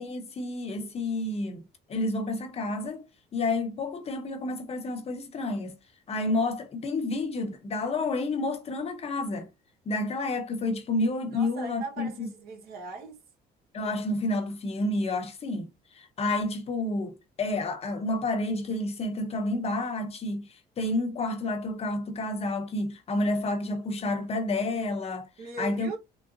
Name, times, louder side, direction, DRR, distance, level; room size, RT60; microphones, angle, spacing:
voice 1, 0.0-3.0 3.3-5.7 6.1-9.5 9.9-12.3 13.7-15.7 15.9-25.3 25.6-25.9, left 2 dB, 35° left, 0.8 m, -30 dB
voice 2, 11.3-13.2 25.4-26.0, right 3 dB, 65° right, 1.1 m, -39 dB
3.8 x 2.0 x 2.5 m
cardioid pair, 110°, 17 cm